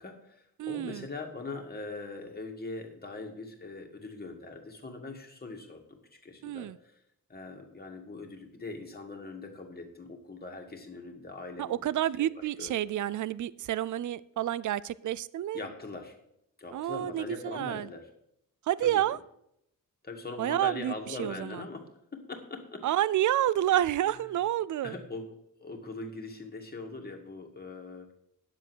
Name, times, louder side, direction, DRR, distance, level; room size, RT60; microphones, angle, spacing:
voice 1, 0.0-5.9 6.1-7.0 7.3-12.3 12.6-12.8 15.5-16.2 16.6-18.1 18.8-19.0 20.0-22.9 24.8-25.3 25.6-28.1, left 3 dB, 25° left, 2 dB, 2.1 m, -41 dB
voice 2, 0.6-1.1 6.4-6.8 11.6-15.7 16.7-17.9 18.7-19.2 20.4-20.9 21.2-21.6 22.8-24.9, right 12 dB, 60° right, 20 dB, 0.5 m, -29 dB
10.0 x 7.6 x 6.2 m, 0.75 s
wide cardioid pair, 135°, 34 cm